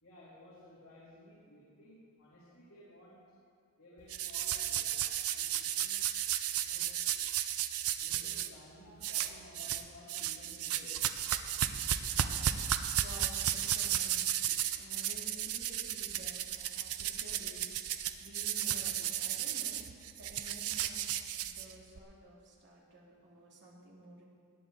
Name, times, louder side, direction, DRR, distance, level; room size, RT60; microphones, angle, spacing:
voice 1, 0.0-3.2 3.8-6.0 6.6-6.9 8.0-11.0, left 1 dB, 70° left, -9 dB, 3.3 m, -56 dB
sound 1, 4.1-8.5 9.0-9.8 10.1-22.0, right 11 dB, 75° right, 0.6 m, -34 dB
voice 2, 13.0-21.0 21.3-24.2, equal, 55° right, -3 dB, 2.6 m, -53 dB
18.5 x 10.0 x 4.0 m, 2.1 s
head